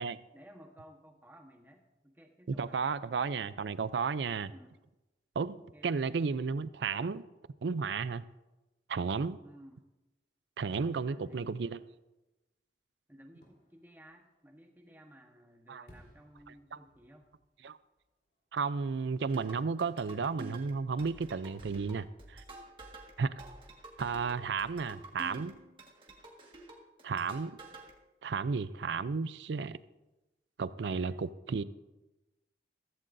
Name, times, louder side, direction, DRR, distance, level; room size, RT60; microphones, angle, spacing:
voice 1, 0.3-2.8 4.5-4.8 5.7-6.0 9.4-9.8 11.1-11.5 13.1-17.3 30.7-31.3, equal, 10° right, 1.2 m, -56 dB
voice 2, 2.5-4.5 5.4-7.2 7.6-8.2 8.9-9.4 10.6-11.8 15.7-15.8 17.6-17.8 18.5-22.4 23.2-23.3 24.0-25.5 27.0-27.6 28.2-29.8 30.6-31.6, right 5 dB, 85° right, 0.4 m, -33 dB
Fireworks, 13.3-19.1 19.5-19.6, equal, 60° left, 3.6 m, -64 dB
sound 1, 19.3-27.9, right 2 dB, 30° right, 1.7 m, -50 dB
15.0 x 15.0 x 2.6 m
head